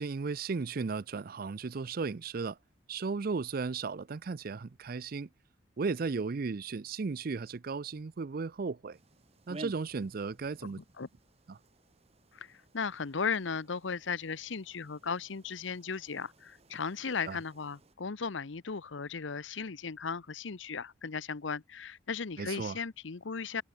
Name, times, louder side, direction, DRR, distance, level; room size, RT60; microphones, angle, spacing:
voice 1, 0.0-2.6 2.9-5.3 5.8-9.0 9.5-10.8 11.5-11.6 17.3-17.4 22.4-22.8, right 4 dB, 50° right, 0.5 m, -35 dB
sound 1, 8.9-18.0, right 2 dB, 30° right, 1.0 m, -54 dB
voice 2, 10.6-11.1 12.3-23.6, left 5 dB, 75° left, 0.8 m, -36 dB
head